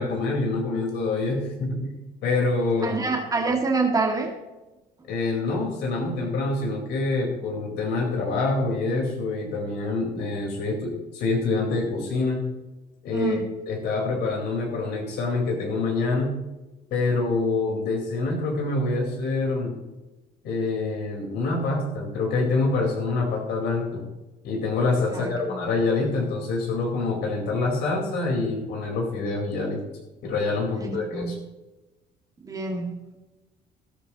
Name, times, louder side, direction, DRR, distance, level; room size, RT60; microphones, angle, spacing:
voice 1, 0.0-1.9 2.2-3.0 5.1-12.4 13.0-16.4 16.9-19.8 20.4-24.0 24.4-29.8 30.2-31.4, left 3 dB, 75° left, -1 dB, 4.4 m, -26 dB
voice 2, 2.8-4.3 13.1-13.4 25.1-25.6 30.7-31.3 32.4-32.9, right 4 dB, 20° right, 0 dB, 2.1 m, -26 dB
13.0 x 13.0 x 3.0 m, 1.1 s
cardioid pair, 110°, 17 cm